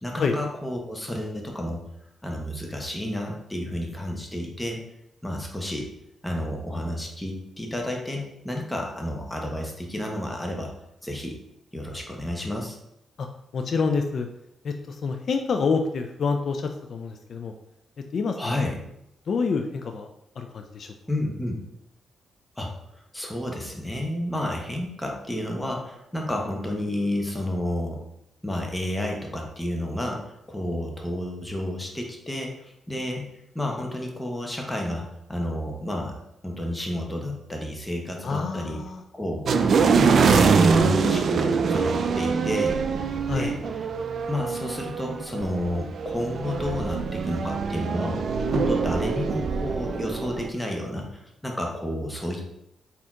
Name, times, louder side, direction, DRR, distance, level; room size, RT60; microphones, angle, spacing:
voice 1, 0.0-1.8 2.2-4.8 5.2-5.9 6.2-10.7 11.0-11.4 11.7-12.8 18.4-18.7 21.1-21.6 22.6-22.7 23.1-28.0 28.4-33.2 33.5-38.8 39.1-39.5 39.8-42.8 43.3-43.6 44.3-52.5, left 1 dB, 10° left, 0 dB, 1.0 m, -31 dB
voice 2, 13.5-14.3 14.6-17.5 18.1-18.6 19.3-20.1 20.4-21.0 38.2-39.0 43.3-43.5, left 4 dB, 60° left, 5 dB, 0.3 m, -27 dB
sound 1, 39.5-50.5, right 5 dB, 60° right, 0.3 m, -24 dB
4.2 x 2.8 x 3.7 m, 0.82 s
cardioid pair, 80°, 0 cm